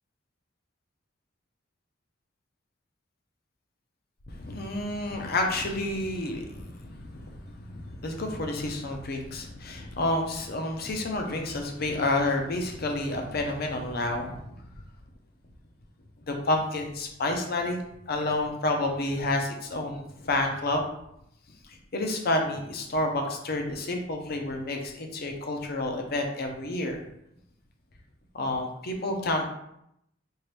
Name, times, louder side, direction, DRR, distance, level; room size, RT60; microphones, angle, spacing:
voice 1, 4.3-14.6 16.3-17.8 18.1-20.9 21.6-27.0 28.3-29.5, left 2 dB, 50° left, 3 dB, 0.7 m, -29 dB
4.5 x 2.5 x 3.3 m, 0.77 s
head